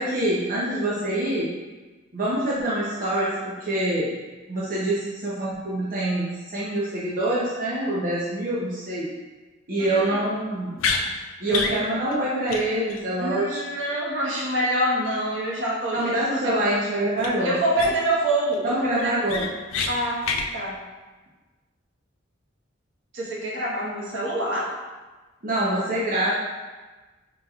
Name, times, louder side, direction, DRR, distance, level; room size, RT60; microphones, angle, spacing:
voice 1, 0.0-1.5 2.1-4.1 4.5-9.1 9.7-10.8 11.4-13.6 15.9-17.6 18.6-19.5 25.4-26.3, right 1 dB, 45° right, -8 dB, 0.7 m, -25 dB
voice 2, 9.8-10.2 11.5-11.8 13.2-16.6 17.4-19.2 19.9-20.2 20.5-20.8 23.1-24.7, right 1 dB, 75° right, -6 dB, 1.2 m, -26 dB
sound 1, 10.8-11.0 11.5-11.8 12.1-12.2 12.5-12.6 12.9-13.0 17.2-17.3 17.8-18.1 18.5-18.6 19.0-19.9 20.2-20.5, left 4 dB, 90° left, 0.4 m, -26 dB
5.3 x 3.1 x 2.3 m, 1.3 s
head